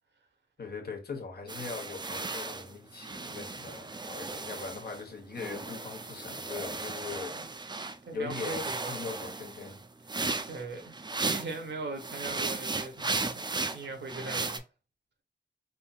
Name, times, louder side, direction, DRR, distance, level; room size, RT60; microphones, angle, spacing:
voice 1, 0.6-7.4 8.1-9.8, left 4 dB, 65° left, 1.0 m, -40 dB
sound 1, 1.5-5.0 5.4-8.0 8.3-11.6 12.0-14.6, right 3 dB, 25° right, 0.4 m, -36 dB
voice 2, 6.9-7.5 8.1-9.0 10.5-10.9 11.2-13.4 13.7-14.6, right 3 dB, 85° right, 1.0 m, -40 dB
3.6 x 2.7 x 2.3 m
wide cardioid pair, 80°, 18 cm